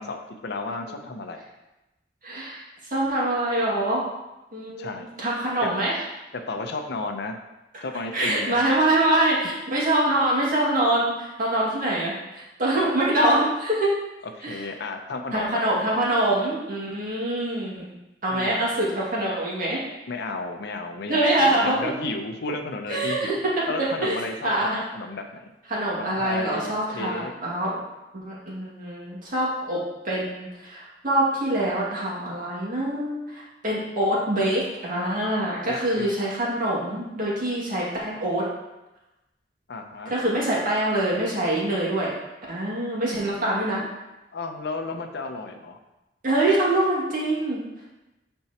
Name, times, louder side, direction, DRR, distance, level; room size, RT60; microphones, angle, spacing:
voice 1, 0.0-1.4 4.8-5.1 5.6-5.7 6.5-7.4 7.8-8.6 14.4-15.7 18.3-18.6 20.1-23.4 23.7-25.4 26.0-27.3 35.6-36.1 39.7-40.1 43.4-43.5 43.8-43.9 44.3-45.8, left 3 dB, 65° left, 5 dB, 0.7 m, -33 dB
voice 2, 2.2-2.6 2.9-4.0 4.5-5.9 8.1-13.9 14.4-14.6 15.3-17.9 18.2-19.8 21.1-21.8 22.9-23.4 24.0-24.2 24.4-24.8 25.7-27.8 28.1-38.4 40.1-42.1 42.5-43.8 46.2-47.6, right 1 dB, 50° right, -6 dB, 2.1 m, -24 dB
8.8 x 4.4 x 2.9 m, 0.99 s
head